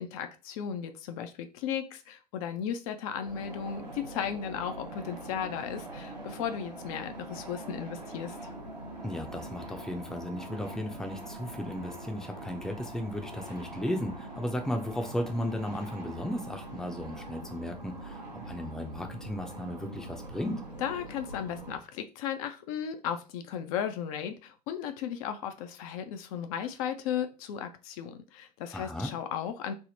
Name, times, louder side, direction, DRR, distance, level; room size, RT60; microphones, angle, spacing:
voice 1, 0.0-8.4 20.8-29.7, left 8 dB, 60° left, 8 dB, 0.5 m, -35 dB
sound 1, 3.2-21.8, right 2 dB, 90° right, 0.8 m, -43 dB
voice 2, 9.0-20.6 28.7-29.1, left 1 dB, ahead, 4 dB, 0.5 m, -35 dB
3.4 x 2.0 x 2.6 m, 0.33 s
figure-of-eight pair, 75°, 21 cm